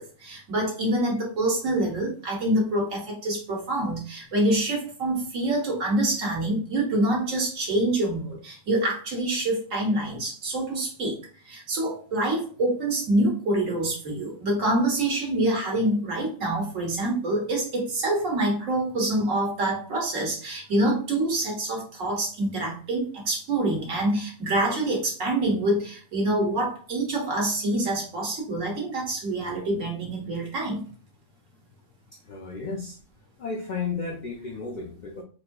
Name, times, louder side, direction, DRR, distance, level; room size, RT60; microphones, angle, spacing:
voice 1, 0.0-11.2 11.4-30.8, right 1 dB, 80° right, -1 dB, 1.5 m, -26 dB
voice 2, 32.3-33.0 33.4-35.2, left 4 dB, 70° left, 1 dB, 0.4 m, -33 dB
4.1 x 2.6 x 2.2 m, 0.41 s
omnidirectional pair, 1.3 m